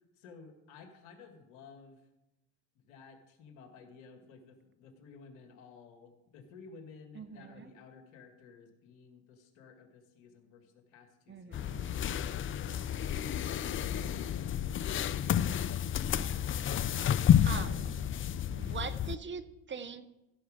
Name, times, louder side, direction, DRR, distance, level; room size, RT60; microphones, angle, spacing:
voice 1, 0.2-2.0 2.8-12.0, left 5 dB, 80° left, 5 dB, 2.2 m, -55 dB
voice 2, 7.1-7.7 11.3-11.9 12.7-13.1 16.1-16.7 17.0-17.9 18.5-20.1, right 6 dB, 30° right, 13 dB, 0.9 m, -44 dB
sound 1, 11.5-19.2, left 9 dB, 30° left, 0.5 m, -30 dB
16.0 x 6.2 x 5.1 m, 0.94 s
hypercardioid pair, 80°, 40 cm